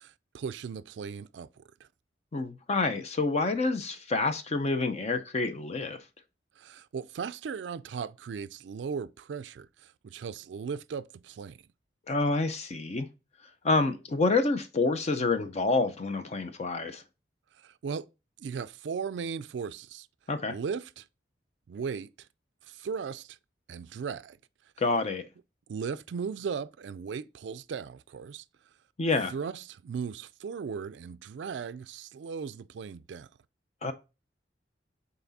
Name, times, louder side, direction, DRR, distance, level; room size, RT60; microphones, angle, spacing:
voice 1, 0.0-1.5 6.6-11.6 17.6-18.1 18.4-20.1 20.5-21.0 21.7-22.3 22.7-23.4 23.7-24.4 25.7-28.4 29.3-33.3, right 6 dB, 75° right, 0.4 m, -37 dB
voice 2, 2.3-6.0 12.1-13.1 13.6-17.0 20.3-20.6 24.8-25.3 29.0-29.3 33.8-33.9, left 3 dB, 40° left, 0.5 m, -28 dB
5.8 x 4.1 x 4.0 m
head